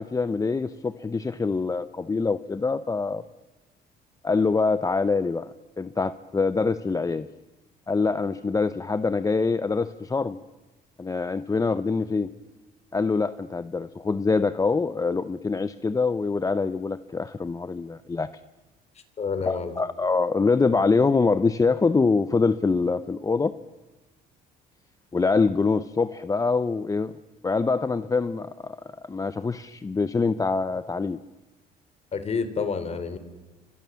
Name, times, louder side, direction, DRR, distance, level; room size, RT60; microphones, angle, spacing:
voice 1, 0.0-3.2 4.2-5.5 5.8-7.3 7.9-10.4 11.0-12.3 12.9-18.3 19.5-23.5 25.1-27.1 27.4-28.8 29.1-31.2, left 4 dB, 20° left, 13 dB, 0.8 m, -24 dB
voice 2, 19.2-19.8 32.1-33.2, left 5 dB, 40° left, 12 dB, 3.4 m, -28 dB
29.5 x 25.0 x 7.1 m, 1.1 s
cardioid pair, 110°, 17 cm